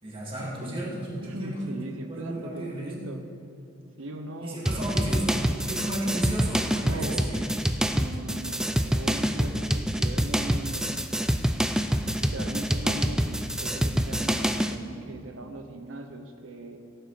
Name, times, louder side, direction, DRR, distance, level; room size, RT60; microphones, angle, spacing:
voice 1, 0.0-1.8 2.1-3.1 4.4-7.4, right 1 dB, 25° right, -5 dB, 2.3 m, -33 dB
voice 2, 0.6-3.2 4.0-5.1 6.8-7.5 7.9-11.1 12.2-16.8, right 1 dB, 75° right, 5 dB, 0.8 m, -39 dB
sound 1, 4.7-14.8, equal, 5° right, 0.3 m, -26 dB
15.5 x 9.1 x 4.1 m, 2.5 s
head